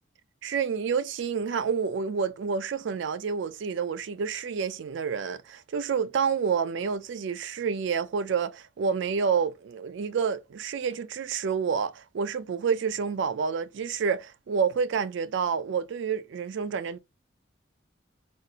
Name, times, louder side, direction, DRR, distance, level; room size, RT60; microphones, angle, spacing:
voice 1, 0.4-17.0, right 6 dB, 70° right, 0.4 m, -29 dB
4.2 x 2.6 x 2.4 m
head